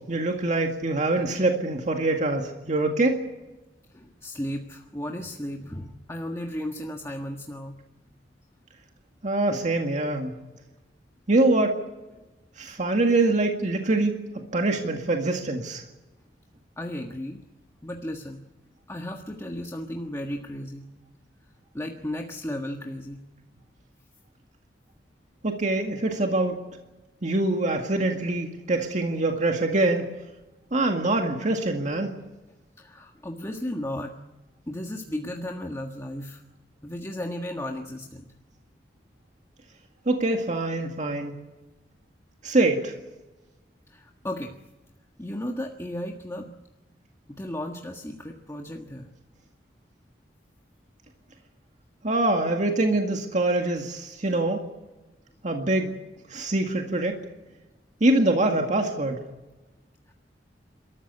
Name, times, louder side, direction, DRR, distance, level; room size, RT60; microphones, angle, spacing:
voice 1, 0.1-3.2 9.2-10.3 11.3-11.8 12.6-14.1 14.5-15.8 25.4-26.5 27.2-30.0 30.7-32.1 40.1-41.3 42.4-42.9 52.0-54.6 55.4-55.9 56.3-57.2 58.0-59.2, right 2 dB, 45° right, 3 dB, 2.0 m, -24 dB
voice 2, 3.9-7.8 16.8-17.4 17.8-18.4 18.9-20.9 21.7-23.2 32.8-34.1 34.7-36.4 36.8-38.3 43.9-44.5 45.2-46.5 47.3-49.1 60.1-60.2, left 1 dB, 15° left, 2 dB, 1.6 m, -34 dB
30.0 x 14.0 x 9.8 m, 1.1 s
head